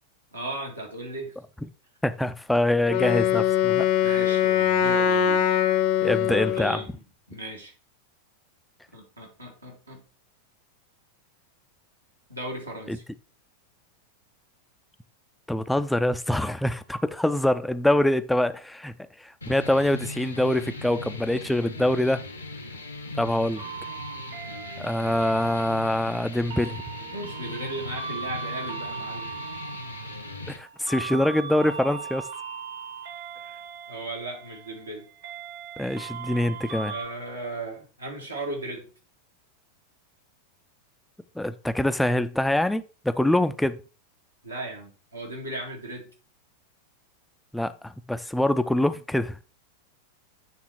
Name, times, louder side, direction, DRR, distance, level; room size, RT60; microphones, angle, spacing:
voice 1, 0.3-1.3 4.0-5.5 6.3-7.0 7.3-7.7 8.9-10.0 12.3-13.0 27.1-29.3 33.9-35.1 36.8-38.9 44.4-46.1, right 1 dB, 85° right, 2.1 m, -36 dB
voice 2, 2.0-3.9 6.0-6.8 12.9-13.0 15.5-18.9 19.2-22.2 23.2-23.6 24.8-26.8 30.5-32.3 35.8-36.9 41.4-43.8 47.5-49.4, left 1 dB, 5° left, 0.4 m, -24 dB
Wind instrument woodwind instrument, 2.9-6.9, left 9 dB, 45° left, 0.7 m, -22 dB
sound 1, 19.4-30.6, left 2 dB, 80° left, 1.1 m, -39 dB
Train station attention tone, 23.6-37.1, right 6 dB, 55° right, 1.4 m, -39 dB
8.2 x 3.6 x 4.4 m
figure-of-eight pair, 90°, 0 cm